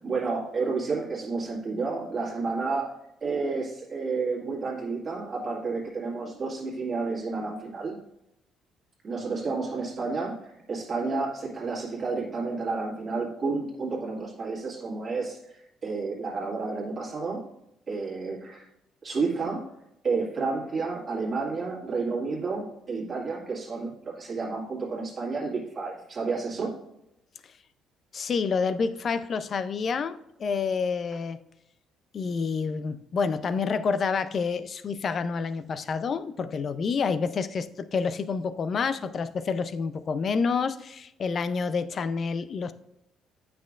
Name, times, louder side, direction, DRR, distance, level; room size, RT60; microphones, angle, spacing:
voice 1, 0.0-3.0 3.2-8.0 9.0-17.5 17.9-18.7 19.0-19.7 20.0-26.8, right 4 dB, 35° right, -4 dB, 2.0 m, -31 dB
voice 2, 28.1-31.4 32.1-42.7, left 5 dB, 45° left, 13 dB, 0.5 m, -28 dB
8.8 x 5.9 x 2.4 m, 0.83 s
cardioid pair, 115°, 0 cm